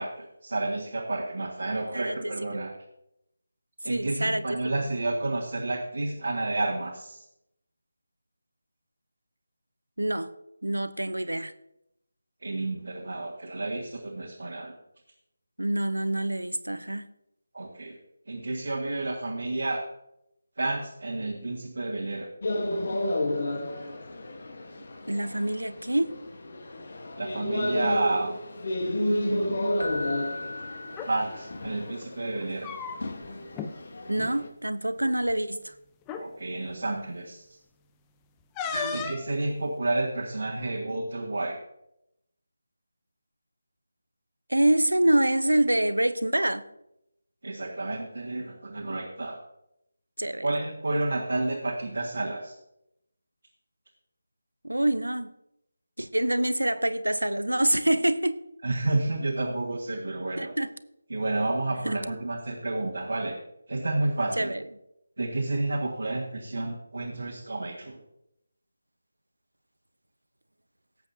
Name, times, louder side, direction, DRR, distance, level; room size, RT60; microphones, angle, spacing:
voice 1, 0.0-2.7 3.8-7.2 12.4-14.7 17.5-18.0 18.3-19.9 20.6-22.3 27.2-28.3 28.9-29.7 31.1-32.7 36.2-37.4 38.9-41.6 47.4-49.4 50.4-52.5 58.6-60.5 61.1-63.4 63.7-64.5 65.2-68.0, right 2 dB, 60° right, 1.7 m, -30 dB
voice 2, 3.9-4.4 10.0-10.3 10.6-11.5 15.6-17.1 25.1-26.1 34.1-35.7 38.7-39.1 44.5-46.7 50.2-50.5 54.6-55.3 56.0-58.4 60.4-60.7 61.9-62.0 64.4-64.6, right 1 dB, 80° right, 0.8 m, -26 dB
sound 1, 22.4-34.5, left 1 dB, 50° left, 1.3 m, -32 dB
Keyboard (musical), 29.8-31.8 35.0-35.2, left 2 dB, 75° left, 1.4 m, -38 dB
sound 2, 30.8-31.1 32.4-33.3 33.5-33.7 34.1-34.3 35.3-35.4 36.0-36.3 38.6-39.3, left 7 dB, 10° left, 0.5 m, -35 dB
18.0 x 8.0 x 2.8 m
figure-of-eight pair, 160°, 0 cm